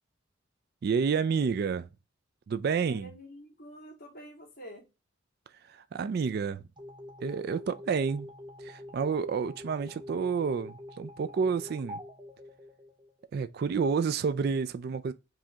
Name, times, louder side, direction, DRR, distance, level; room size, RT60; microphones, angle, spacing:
voice 1, 0.8-1.9 2.5-3.1 5.7-6.6 7.2-8.3 8.6-12.0 13.3-15.1, right 5 dB, 55° right, 0.3 m, -29 dB
voice 2, 2.8-4.8, right 1 dB, 50° left, 2.4 m, -48 dB
sound 1, 6.8-13.2, left 1 dB, 25° right, 0.9 m, -46 dB
4.9 x 2.8 x 3.4 m
head